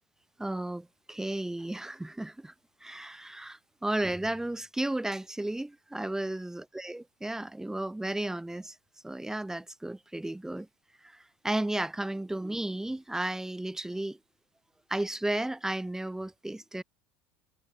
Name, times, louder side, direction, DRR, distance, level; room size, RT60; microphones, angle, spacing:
voice 1, 0.4-2.5 2.8-8.7 9.0-10.7 11.0-14.2 14.9-16.8, right 1 dB, 5° right, 4.2 m, -34 dB
hypercardioid pair, 75°, 7 cm